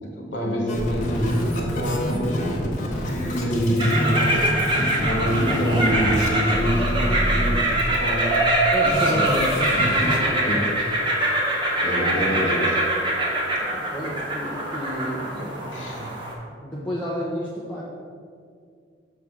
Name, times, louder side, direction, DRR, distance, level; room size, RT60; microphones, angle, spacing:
voice 1, 0.0-2.7 3.2-4.4 5.0-8.4 8.8-9.3 10.4-10.6 11.8-12.8 15.4-15.5 15.7-16.2, equal, 75° left, -1 dB, 1.4 m, -26 dB
sound 1, 0.7-10.2, equal, 40° left, 1.2 m, -26 dB
sound 2, 3.8-16.3, right 1 dB, 25° right, 1.0 m, -24 dB
voice 2, 8.7-9.6 10.2-10.7 13.7-15.7 16.6-17.8, equal, 10° left, -7 dB, 0.8 m, -30 dB
7.1 x 3.4 x 6.0 m, 2.2 s
head